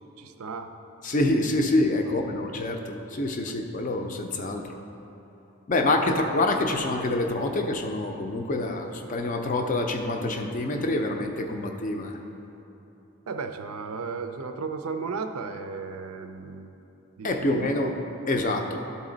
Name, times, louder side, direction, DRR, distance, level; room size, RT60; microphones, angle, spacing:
voice 1, 0.2-0.7 2.1-2.6 3.5-3.6 5.8-6.2 13.3-16.7 17.2-17.9 18.7-18.8, right 4 dB, 75° right, 7 dB, 0.5 m, -35 dB
voice 2, 1.0-4.8 5.7-12.2 17.2-18.0 18.3-18.8, left 2 dB, 35° left, 4 dB, 0.4 m, -26 dB
12.0 x 4.1 x 3.9 m, 3.0 s
head